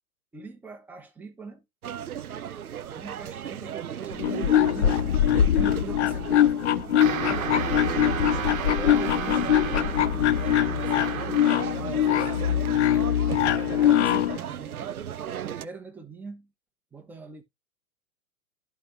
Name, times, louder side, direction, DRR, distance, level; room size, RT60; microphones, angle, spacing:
voice 1, 0.3-1.6 2.9-5.0 5.6-7.5 8.8-11.4 11.7-12.3 13.7-14.9 15.4-16.5 16.9-17.4, right 4 dB, 5° right, 0.6 m, -42 dB
sound 1, 1.8-15.7, right 9 dB, 80° right, 0.6 m, -36 dB
sound 2, 4.1-14.4, left 11 dB, 50° left, 0.6 m, -23 dB
sound 3, 7.0-11.8, right 8 dB, 65° right, 0.9 m, -33 dB
11.0 x 4.2 x 3.2 m
figure-of-eight pair, 105°, 43 cm